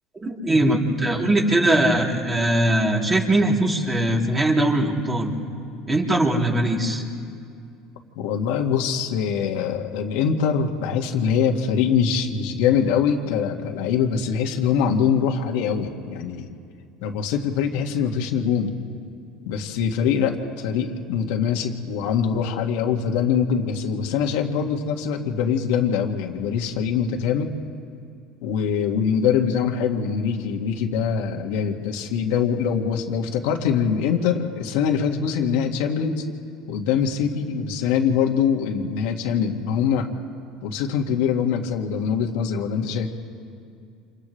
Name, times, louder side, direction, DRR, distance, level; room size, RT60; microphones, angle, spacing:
voice 1, 0.2-5.3 5.9-7.0, right 1 dB, 20° right, -1 dB, 3.2 m, -21 dB
voice 2, 8.2-16.5 17.0-18.7 19.5-27.5 28.4-36.2 36.7-40.1 40.6-43.1, left 7 dB, 80° left, 2 dB, 2.0 m, -23 dB
29.5 x 27.5 x 3.3 m, 2.4 s
supercardioid pair, 105°, 0 cm